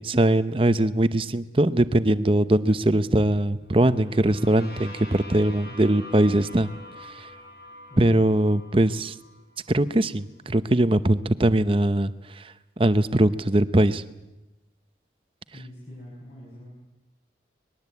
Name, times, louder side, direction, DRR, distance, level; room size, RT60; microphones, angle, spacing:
voice 1, 0.0-6.7 7.2-7.3 8.0-9.1 9.7-14.0, right 1 dB, 30° right, 13 dB, 0.8 m, -21 dB
sound 1, 3.7-9.6, left 1 dB, 60° left, 5.5 m, -44 dB
voice 2, 15.5-16.7, left 1 dB, 40° left, -5 dB, 7.6 m, -44 dB
24.5 x 20.5 x 8.4 m, 0.99 s
head